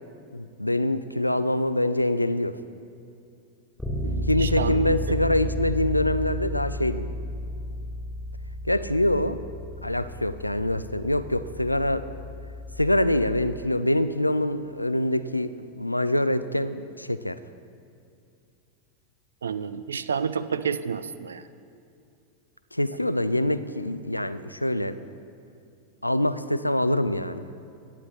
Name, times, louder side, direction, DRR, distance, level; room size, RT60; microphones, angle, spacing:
voice 1, 0.3-2.6 4.3-7.1 8.6-9.4 9.8-12.1 12.8-17.4 22.7-25.0 26.0-27.4, left 1 dB, 85° left, 13 dB, 0.4 m, -25 dB
Bass guitar, 3.8-13.6, left 1 dB, ahead, 1.4 m, -33 dB
voice 2, 4.0-4.8 9.2-9.4 19.4-21.4, right 6 dB, 70° right, 14 dB, 0.4 m, -30 dB
17.0 x 9.6 x 3.2 m, 2.5 s
figure-of-eight pair, 90°, 0 cm